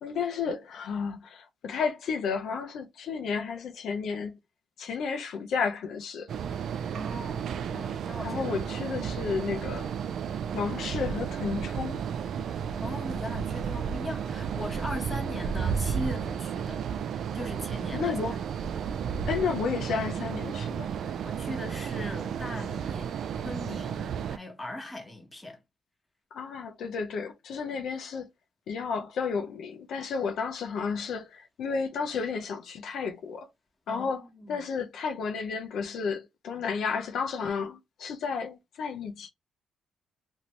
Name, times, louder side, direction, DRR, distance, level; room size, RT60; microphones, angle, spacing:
voice 1, 0.0-4.4 4.8-6.3 8.2-9.9 10.5-12.0 17.9-18.4 19.3-20.9 26.3-28.3 28.7-33.5 33.9-39.3, left 5 dB, 70° left, 0.6 m, -32 dB
sound 1, 6.3-24.4, right 7 dB, 65° right, 0.3 m, -33 dB
voice 2, 6.9-8.6 12.8-16.8 17.3-18.4 21.0-23.1 23.4-25.6 33.9-34.6, left 1 dB, 10° left, 1.3 m, -39 dB
2.8 x 2.6 x 3.1 m
cardioid pair, 90°, 0 cm